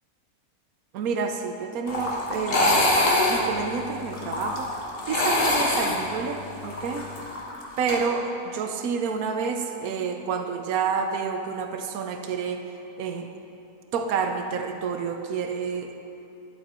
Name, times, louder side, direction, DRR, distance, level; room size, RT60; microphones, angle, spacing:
voice 1, 0.9-2.9 3.3-4.7 5.1-7.1 7.8-12.7 13.0-13.3 13.9-16.0, right 5 dB, 70° right, 5 dB, 1.2 m, -29 dB
sound 1, 1.9-8.0, left 1 dB, 40° left, 1.4 m, -24 dB
11.5 x 7.8 x 4.3 m, 2.8 s
omnidirectional pair, 1.6 m